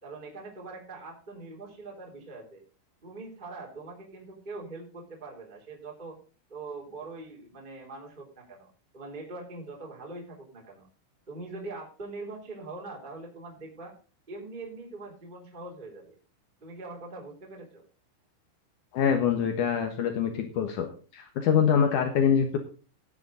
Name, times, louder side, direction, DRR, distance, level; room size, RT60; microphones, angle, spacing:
voice 1, 0.0-2.6 3.0-6.2 6.5-8.7 8.9-10.9 11.3-13.9 14.3-16.1 16.6-17.8, right 3 dB, 10° right, -1 dB, 2.6 m, -42 dB
voice 2, 18.9-20.9 21.1-22.6, left 7 dB, 70° left, 5 dB, 1.9 m, -24 dB
14.0 x 10.0 x 3.9 m, 0.37 s
omnidirectional pair, 5.4 m